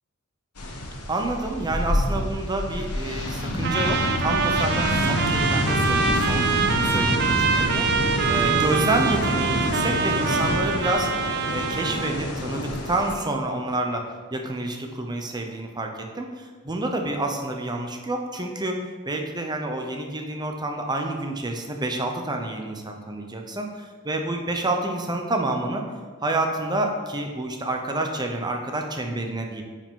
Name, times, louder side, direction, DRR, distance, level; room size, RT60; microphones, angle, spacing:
sound 1, 0.6-13.2, left 1 dB, 85° left, 1.1 m, -27 dB
voice 1, 1.1-14.0 14.3-18.7 19.1-23.7 24.0-25.8 26.2-29.6, right 2 dB, 20° right, 3 dB, 0.8 m, -28 dB
Trumpet, 3.6-12.2, right 6 dB, 45° right, 0.5 m, -25 dB
9.5 x 5.0 x 3.8 m, 1.5 s
head